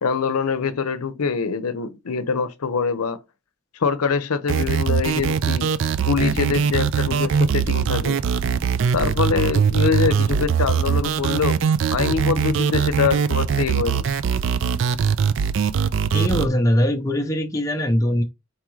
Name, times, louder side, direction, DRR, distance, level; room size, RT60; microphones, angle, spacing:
voice 1, 0.0-3.2 3.8-5.7 6.1-8.2 8.9-11.6 11.9-14.1, left 5 dB, 90° left, 0.6 m, -24 dB
sound 1, 4.5-16.5, right 7 dB, 60° right, 0.3 m, -21 dB
voice 2, 16.1-18.2, left 1 dB, 15° left, 0.6 m, -21 dB
4.5 x 3.6 x 3.1 m
head